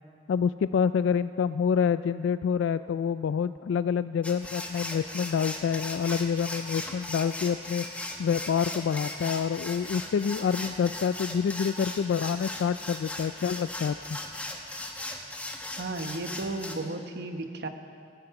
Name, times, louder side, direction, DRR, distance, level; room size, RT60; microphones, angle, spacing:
voice 1, 0.3-7.8 8.2-14.0, left 7 dB, 70° left, 13 dB, 0.3 m, -27 dB
sound 1, 4.2-16.8, left 1 dB, 5° left, 1.2 m, -38 dB
voice 2, 15.7-17.7, right 2 dB, 60° right, 6 dB, 1.1 m, -34 dB
15.0 x 14.5 x 5.9 m, 2.3 s
head